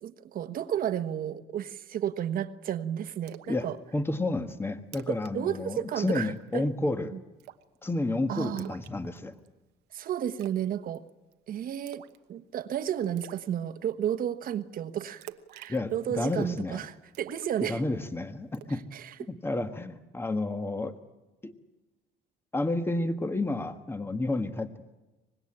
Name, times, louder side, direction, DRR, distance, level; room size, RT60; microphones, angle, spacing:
voice 1, 0.0-3.8 5.1-6.6 7.1-7.2 8.3-8.7 9.9-11.0 11.5-12.0 12.3-16.9 17.2-17.8 18.9-19.1, right 10 dB, 60° right, 11 dB, 1.3 m, -32 dB
Splash splatter, 3.3-3.6 4.0-4.1 4.5-4.6 4.8-5.3 5.6-5.8 6.1-6.5 7.4-7.8 8.6-9.5 10.4-10.7 10.9-11.3 11.9-12.2 12.6-12.7 13.2-13.5 15.2-16.5 17.1-18.1 18.5-18.8, right 13 dB, 85° right, 1.1 m, -48 dB
voice 2, 3.9-7.1 7.8-9.3 15.7-16.8 17.6-18.8 19.3-21.0 21.4-21.5 22.5-24.7, left 2 dB, 15° left, 9 dB, 1.5 m, -30 dB
24.5 x 20.5 x 8.8 m, 1.1 s
cardioid pair, 110°, 17 cm